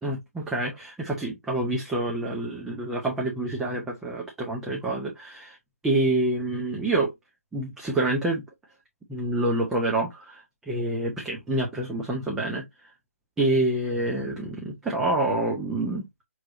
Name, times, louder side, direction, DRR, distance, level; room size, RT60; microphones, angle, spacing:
voice 1, 0.0-5.6 5.8-7.1 7.5-8.4 9.1-12.9 13.4-16.0, right 2 dB, 5° right, 0.6 m, -27 dB
5.9 x 3.1 x 2.5 m
figure-of-eight pair, 155°, 8 cm